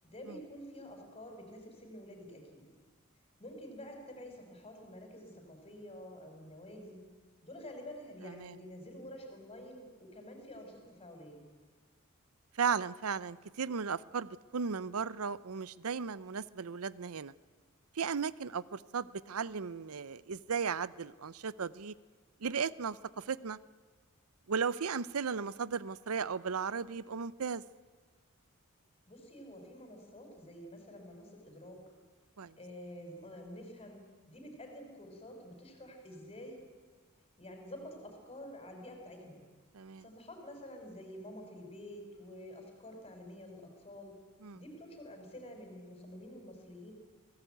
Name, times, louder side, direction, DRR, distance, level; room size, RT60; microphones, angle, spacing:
voice 1, 0.0-2.6 3.4-7.0 7.4-11.5 29.1-31.8 32.6-36.6 37.4-39.4 40.0-44.1 44.5-46.9, left 1 dB, 25° left, 4 dB, 5.6 m, -49 dB
voice 2, 8.2-8.6 12.6-17.3 18.0-21.9 22.4-23.6 24.5-27.6 32.4-32.5 39.7-40.0 44.4-44.6, right 6 dB, 85° right, 19 dB, 0.7 m, -36 dB
24.5 x 17.5 x 9.3 m, 1.5 s
head